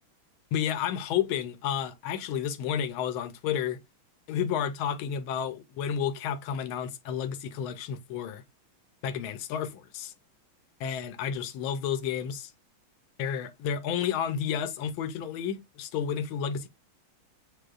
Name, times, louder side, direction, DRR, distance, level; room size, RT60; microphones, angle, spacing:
voice 1, 0.5-3.8 4.3-8.4 9.0-10.1 10.8-12.5 13.2-16.7, left 8 dB, 80° left, 1.5 m, -31 dB
7.7 x 2.7 x 2.4 m
omnidirectional pair, 2.3 m